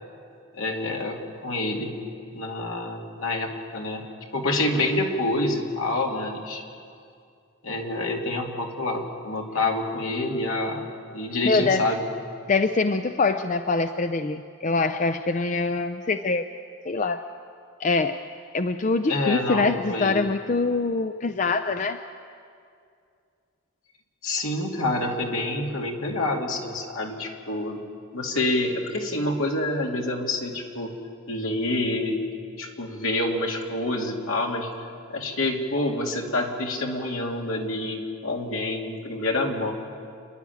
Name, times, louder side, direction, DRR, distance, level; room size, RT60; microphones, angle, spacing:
voice 1, 0.5-2.0 2.3-4.1 4.3-6.6 7.6-12.1 19.1-20.3 24.2-27.8 28.1-30.9 31.3-32.2 32.6-34.7 35.1-39.7, left 2 dB, 75° left, 0 dB, 2.5 m, -27 dB
voice 2, 11.4-11.9 12.5-16.4 16.9-17.2 17.8-18.2 18.5-22.0, left 3 dB, 35° left, 9 dB, 0.5 m, -24 dB
29.0 x 11.0 x 9.4 m, 2.3 s
head